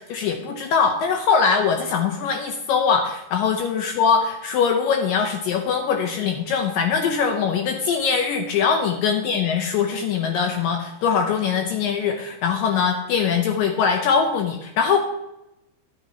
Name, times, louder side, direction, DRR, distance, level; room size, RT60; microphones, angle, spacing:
voice 1, 0.0-15.0, left 6 dB, 90° left, 3 dB, 1.9 m, -22 dB
11.5 x 11.0 x 2.9 m, 0.87 s
omnidirectional pair, 5.1 m